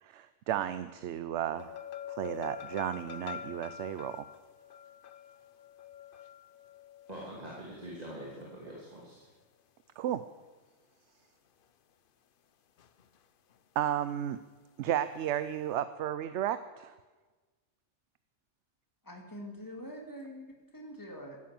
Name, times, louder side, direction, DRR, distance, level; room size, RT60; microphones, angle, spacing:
voice 1, 0.0-4.3 10.0-10.2 13.8-14.4 14.8-16.9, right 11 dB, 70° right, 13 dB, 0.9 m, -33 dB
sound 1, 1.6-8.9 12.8-13.2 13.5-13.6, left 9 dB, 50° left, 0.7 m, -46 dB
voice 2, 7.1-9.3, right 1 dB, 30° right, -4 dB, 2.9 m, -44 dB
voice 3, 19.0-21.4, equal, 15° left, 1 dB, 2.4 m, -45 dB
14.5 x 11.5 x 7.6 m, 1.3 s
omnidirectional pair, 1.3 m